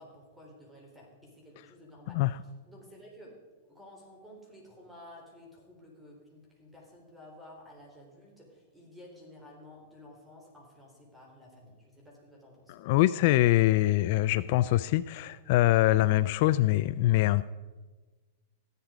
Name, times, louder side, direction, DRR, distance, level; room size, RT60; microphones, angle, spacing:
voice 1, 0.0-2.4 2.7-3.4 3.6-12.7, left 1 dB, 5° right, -1 dB, 3.9 m, -52 dB
voice 2, 12.7-17.4, left 16 dB, 50° left, 16 dB, 0.3 m, -24 dB
14.5 x 11.0 x 5.0 m, 1.3 s
supercardioid pair, 145°, 0 cm